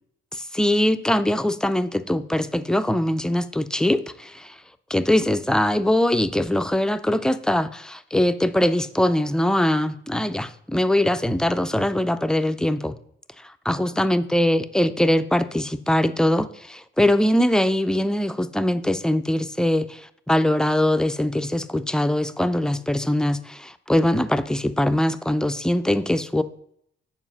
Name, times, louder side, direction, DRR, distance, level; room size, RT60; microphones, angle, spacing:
voice 1, 0.3-4.5 4.9-13.0 13.7-26.4, left 1 dB, 5° left, 10 dB, 0.4 m, -22 dB
7.5 x 4.6 x 6.1 m, 0.69 s
cardioid pair, 90°, 20 cm